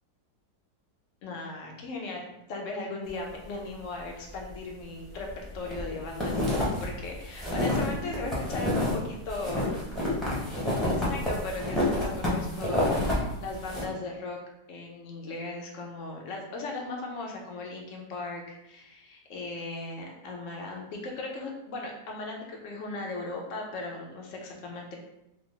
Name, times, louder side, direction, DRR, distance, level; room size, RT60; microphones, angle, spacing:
voice 1, 1.2-9.7 11.0-14.4 14.7-25.0, left 2 dB, 65° left, 0 dB, 0.8 m, -37 dB
sound 1, 5.2-5.8 6.1-8.9 9.3-13.1 13.5-13.8, left 1 dB, ahead, 0.6 m, -28 dB
3.5 x 2.0 x 3.7 m, 0.85 s
omnidirectional pair, 1.9 m